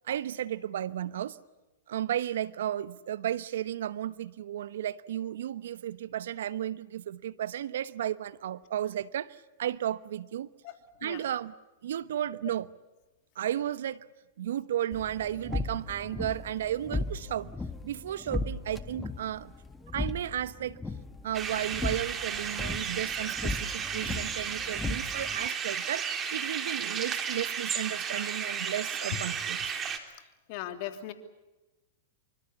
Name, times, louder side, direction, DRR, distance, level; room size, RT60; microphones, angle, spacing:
voice 1, 0.1-1.4 1.9-10.5 11.0-11.5 11.8-12.7 13.4-14.0 14.4-17.5 17.8-19.5 19.9-20.8 21.2-29.6, right 11 dB, 70° right, 16 dB, 1.0 m, -34 dB
sound 1, 14.9-25.5, left 2 dB, 10° left, 1.7 m, -37 dB
sound 2, 21.3-30.0, right 7 dB, 25° right, 3.4 m, -33 dB
voice 2, 30.5-31.1, left 12 dB, 50° left, 8 dB, 3.0 m, -38 dB
26.5 x 24.5 x 7.1 m, 1.1 s
hypercardioid pair, 115°, 0 cm